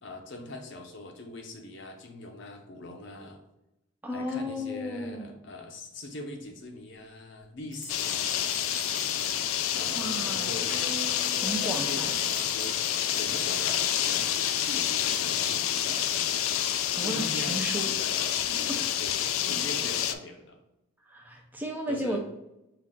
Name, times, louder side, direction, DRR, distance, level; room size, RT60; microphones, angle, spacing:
voice 1, 0.0-3.4 4.1-8.8 9.4-10.8 11.4-12.8 13.1-16.1 17.0-19.2 19.5-20.6 21.9-22.2, left 2 dB, 55° left, 3 dB, 0.7 m, -42 dB
voice 2, 4.0-5.3 9.9-10.5 11.3-12.1 16.9-17.9 18.7-18.8 21.1-22.2, equal, 10° right, 0 dB, 0.4 m, -34 dB
sound 1, 7.7-9.7 11.1-14.0, right 2 dB, 30° right, 1.0 m, -46 dB
sound 2, 7.9-20.1, left 10 dB, 70° left, 0.3 m, -28 dB
sound 3, 8.5-14.1, right 3 dB, 85° right, 1.2 m, -46 dB
5.7 x 2.4 x 3.6 m, 0.90 s
head